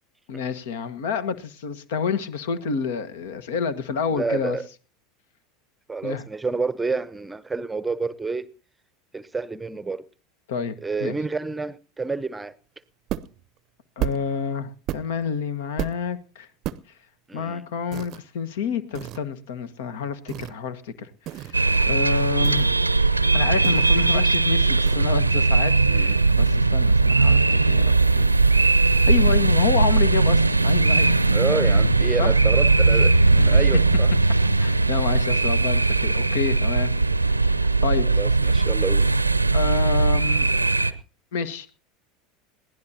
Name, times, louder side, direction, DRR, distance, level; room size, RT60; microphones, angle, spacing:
voice 1, 0.3-4.6 6.0-6.2 10.5-10.7 11.0-11.1 14.0-16.5 17.3-22.7 23.3-28.3 28.9-31.2 32.2-32.3 32.9-33.0 33.4-33.7 34.6-36.9 37.6-38.1 39.5-40.5 41.3-41.7, left 6 dB, 65° left, 1.4 m, -28 dB
voice 2, 4.1-4.6 5.9-8.4 9.1-10.0 10.8-12.5 17.3-17.6 25.9-26.1 31.3-34.1 38.1-39.1, right 4 dB, 10° right, 0.8 m, -29 dB
sound 1, 13.1-13.4 14.0-14.4 14.9-15.3 15.8-16.1 16.6-16.9 17.9-18.2 19.0-19.2 20.3-20.6 21.3-21.7 22.4-22.8 23.6-24.1 24.9-25.0, right 13 dB, 45° right, 0.6 m, -32 dB
sound 2, 21.5-40.9, right 3 dB, 90° right, 0.6 m, -19 dB
21.5 x 16.5 x 2.9 m
figure-of-eight pair, 80°, 0 cm